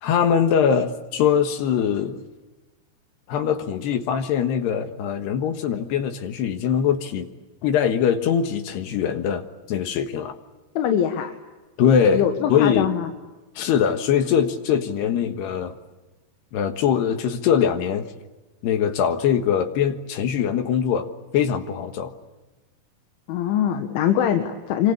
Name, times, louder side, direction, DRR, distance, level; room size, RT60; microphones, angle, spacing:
voice 1, 0.0-2.2 3.3-7.3 7.6-10.3 11.8-12.9 13.6-15.7 16.5-18.1 18.6-22.1, left 8 dB, 70° left, 8 dB, 3.3 m, -22 dB
voice 2, 10.8-11.3 12.0-13.1 23.3-24.9, left 9 dB, 90° left, 6 dB, 4.1 m, -23 dB
27.0 x 25.5 x 8.6 m, 1.1 s
omnidirectional pair, 5.3 m